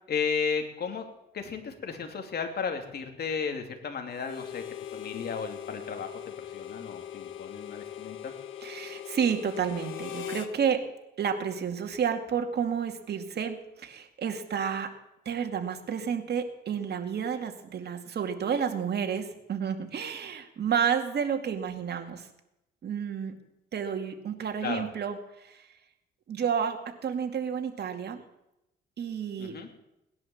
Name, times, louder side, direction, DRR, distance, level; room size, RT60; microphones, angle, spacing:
voice 1, 0.1-1.1 1.3-4.6 4.9-8.3 24.6-24.8 29.4-29.7, left 6 dB, 55° left, 4 dB, 2.8 m, -34 dB
Harmonica, 4.2-10.5, left 10 dB, 75° left, 1.4 m, -40 dB
voice 2, 8.6-10.8 11.2-14.9 15.3-22.3 22.8-23.3 23.7-25.7 26.3-28.2 29.0-29.6, right 7 dB, 55° right, 5 dB, 2.3 m, -30 dB
18.5 x 10.5 x 7.3 m, 0.89 s
cardioid pair, 90°, 20 cm